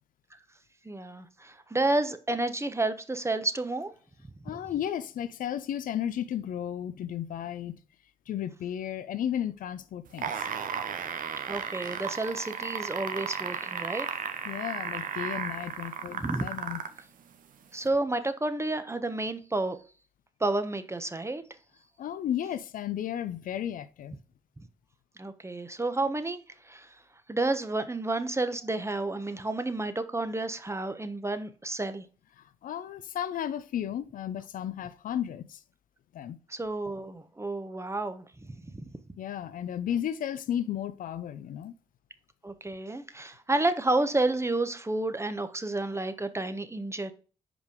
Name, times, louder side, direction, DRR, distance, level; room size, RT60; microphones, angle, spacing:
voice 1, 0.8-3.9 11.5-14.1 16.2-16.5 17.7-19.8 20.4-21.4 25.2-26.4 26.7-26.9 27.3-32.1 36.5-38.9 42.4-47.1, right 2 dB, 20° right, 1.1 m, -30 dB
voice 2, 4.4-7.7 8.3-10.5 14.4-16.8 22.0-24.1 32.4-35.6 36.1-36.4 39.2-41.7, left 10 dB, 65° left, 0.5 m, -34 dB
sound 1, 10.1-17.0 17.8-17.9, right 7 dB, 65° right, 0.9 m, -34 dB
5.1 x 5.1 x 4.9 m
hypercardioid pair, 45°, 15 cm